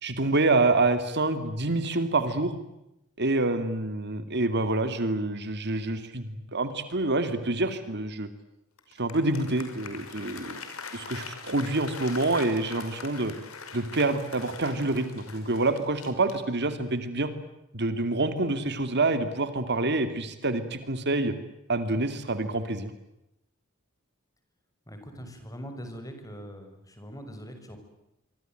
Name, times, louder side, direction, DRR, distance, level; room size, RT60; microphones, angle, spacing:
voice 1, 0.0-2.5 3.2-8.3 9.0-10.6 10.9-13.3 13.7-17.3 17.7-21.3 21.7-22.9, right 2 dB, 55° right, 10 dB, 2.5 m, -27 dB
Applause, 8.8-16.9, left 5 dB, 85° left, 5.8 m, -43 dB
voice 2, 24.9-27.8, equal, 15° left, 7 dB, 6.3 m, -42 dB
26.0 x 24.5 x 9.1 m, 0.87 s
head